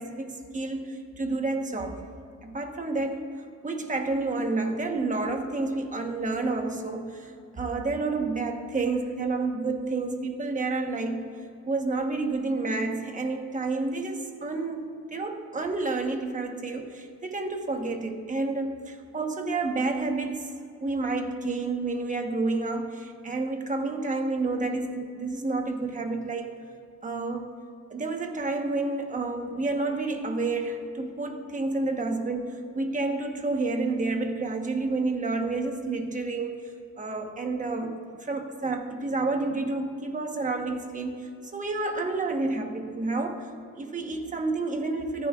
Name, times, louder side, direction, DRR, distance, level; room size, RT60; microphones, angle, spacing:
voice 1, 0.0-2.0 2.4-3.3 3.6-11.2 11.7-20.5 20.8-26.6 27.0-27.5 27.9-36.6 37.0-43.5 43.7-45.3, right 3 dB, 25° right, 4 dB, 1.1 m, -30 dB
24.0 x 10.5 x 2.4 m, 2.4 s
cardioid pair, 145°, 31 cm